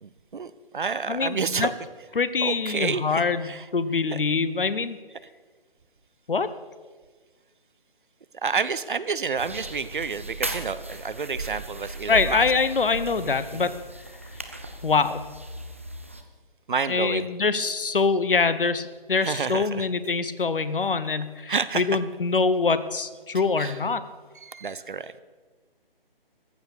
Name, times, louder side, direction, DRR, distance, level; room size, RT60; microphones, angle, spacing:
voice 1, 0.0-1.7 2.4-3.7 4.1-4.2 8.4-12.4 13.2-13.7 16.7-17.3 19.2-19.9 21.5-22.0 23.6-23.8 24.4-25.2, right 5 dB, 55° right, 15 dB, 0.8 m, -30 dB
voice 2, 1.1-1.7 2.1-5.0 6.3-6.5 12.1-13.7 14.8-15.2 16.9-24.0, left 4 dB, 65° left, 14 dB, 1.1 m, -24 dB
sound 1, 9.4-16.2, right 2 dB, 15° right, 0.4 m, -36 dB
14.5 x 10.5 x 6.8 m, 1.4 s
figure-of-eight pair, 145°, 29 cm